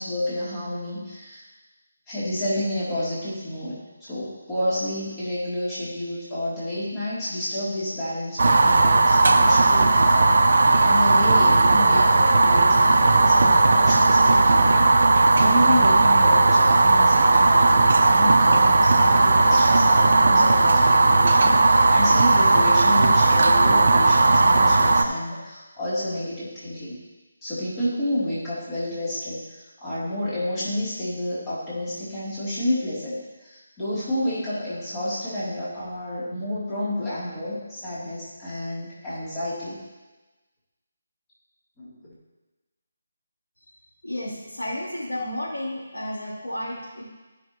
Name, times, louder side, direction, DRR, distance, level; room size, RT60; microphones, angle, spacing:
voice 1, 0.0-1.4 2.1-3.7 4.0-10.3 10.8-14.8 15.3-27.0 27.4-39.8 41.8-42.1, left 1 dB, 15° left, -11 dB, 3.1 m, -30 dB
Fire, 8.4-25.0, right 3 dB, 55° right, 0.7 m, -17 dB
voice 2, 44.0-47.0, left 1 dB, 75° left, -8 dB, 3.3 m, -32 dB
14.5 x 6.1 x 3.1 m, 1.2 s
figure-of-eight pair, 150°, 0 cm